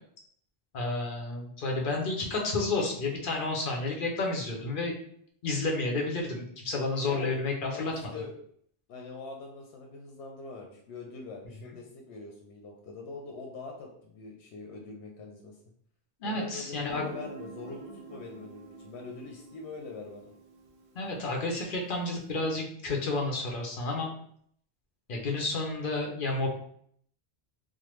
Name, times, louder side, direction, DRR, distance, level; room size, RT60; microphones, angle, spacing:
voice 1, 0.7-4.9 5.4-7.9 16.2-17.0 21.0-24.1 25.1-26.5, left 2 dB, 55° left, 0 dB, 0.8 m, -31 dB
voice 2, 6.9-7.4 7.7-8.3 8.9-15.6 16.2-20.3 23.9-24.1, left 4 dB, 85° left, 1 dB, 0.9 m, -43 dB
Guitar, 16.9-22.4, right 3 dB, 65° right, 0.7 m, -48 dB
3.3 x 2.0 x 3.0 m, 0.64 s
omnidirectional pair, 1.1 m